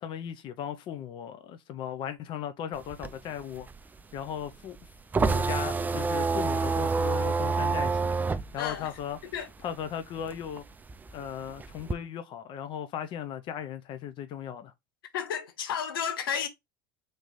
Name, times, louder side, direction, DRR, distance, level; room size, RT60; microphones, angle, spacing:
voice 1, 0.0-3.7 4.1-4.8 5.2-8.2 8.5-9.2 9.6-10.6 11.1-14.7, left 9 dB, 45° left, 0.6 m, -37 dB
sound 1, 2.8-9.9 10.2-11.9, right 4 dB, 15° right, 0.4 m, -28 dB
voice 2, 8.6-8.9 9.3-9.5 15.1-16.5, left 8 dB, 80° left, 0.8 m, -32 dB
3.3 x 3.0 x 4.0 m
hypercardioid pair, 85°, 12 cm